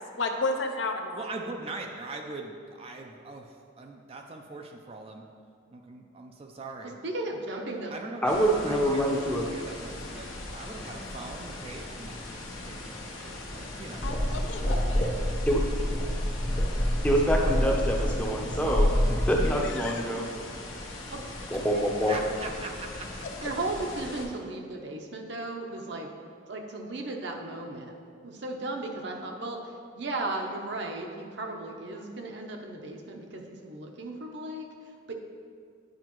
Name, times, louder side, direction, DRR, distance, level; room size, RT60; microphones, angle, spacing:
voice 1, 0.0-1.2 14.0-15.1 19.6-20.0, left 2 dB, 65° left, 4 dB, 0.6 m, -32 dB
voice 2, 1.1-5.3 5.7-6.9 7.9-8.3 8.7-14.3 21.7-23.1, right 3 dB, 30° right, 3 dB, 0.4 m, -42 dB
voice 3, 7.0-7.9 21.1-21.2 23.4-26.1 26.5-28.0 28.2-35.1, right 2 dB, 60° right, 2 dB, 0.7 m, -36 dB
voice 4, 8.2-9.5 15.5-15.6 17.0-18.9 19.3-20.2 21.5-22.1, equal, 5° left, -1 dB, 0.6 m, -25 dB
sound 1, 8.3-24.3, left 2 dB, 80° left, 1.2 m, -40 dB
sound 2, 13.9-19.5, equal, 35° left, 0.9 m, -27 dB
9.5 x 4.9 x 3.0 m, 2.2 s
head